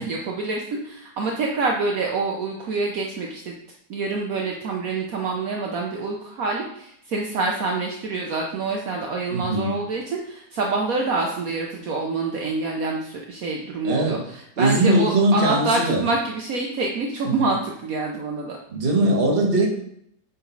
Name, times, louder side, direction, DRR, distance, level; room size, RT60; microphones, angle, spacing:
voice 1, 0.0-3.5 3.9-14.2 14.6-18.6, right 3 dB, 65° right, 0 dB, 1.2 m, -26 dB
voice 2, 9.3-9.8 13.8-14.2 14.6-16.1 17.2-17.3 18.7-19.7, right 1 dB, 35° right, 0 dB, 1.4 m, -20 dB
8.9 x 4.1 x 3.9 m, 0.71 s
omnidirectional pair, 1.7 m